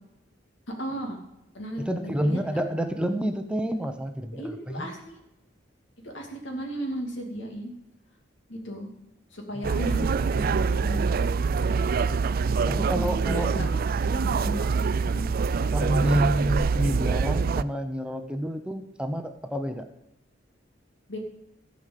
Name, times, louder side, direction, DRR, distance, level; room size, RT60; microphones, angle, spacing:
voice 1, 0.7-1.2 1.5-2.6 4.3-5.2 6.0-7.7 8.5-8.9 9.3-11.0 13.3-13.7 14.0-14.7 15.0-15.3 15.6-16.1 21.1-21.2, equal, 80° left, 2 dB, 2.6 m, -36 dB
voice 2, 1.8-4.9 9.6-10.1 12.7-13.9 15.7-19.9, equal, 5° right, 7 dB, 0.8 m, -29 dB
sound 1, 9.6-17.6, right 5 dB, 50° right, 0.4 m, -25 dB
14.5 x 5.2 x 8.4 m, 0.88 s
head